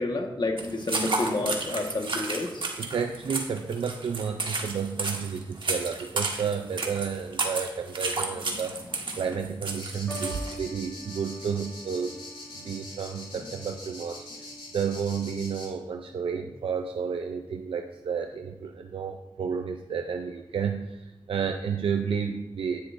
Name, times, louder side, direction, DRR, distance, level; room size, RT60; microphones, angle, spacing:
voice 1, 0.0-2.7 8.5-8.6 13.3-13.4, left 2 dB, 55° left, 3 dB, 1.4 m, -30 dB
sound 1, 0.6-10.6, right 3 dB, 65° right, 1.4 m, -32 dB
voice 2, 2.8-8.7 9.2-12.1 12.6-14.3 14.7-22.9, right 6 dB, 90° right, 5 dB, 0.5 m, -31 dB
sound 2, 9.8-15.7, left 2 dB, 75° left, 2.7 m, -43 dB
sound 3, 10.1-16.6 17.4-17.9, right 1 dB, 15° left, 3.2 m, -46 dB
10.0 x 9.7 x 2.6 m, 0.97 s
cardioid pair, 50°, 9 cm